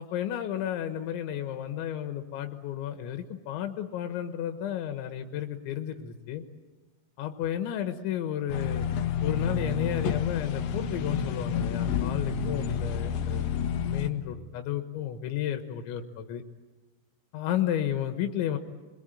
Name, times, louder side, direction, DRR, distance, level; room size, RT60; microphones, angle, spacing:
voice 1, 0.0-6.4 7.2-8.9 9.2-13.5 13.9-16.4 17.3-18.6, left 10 dB, 85° left, 7 dB, 3.6 m, -32 dB
sound 1, 8.5-14.1, left 7 dB, 65° left, 2.8 m, -29 dB
28.0 x 22.0 x 9.1 m, 1.3 s
omnidirectional pair, 5.2 m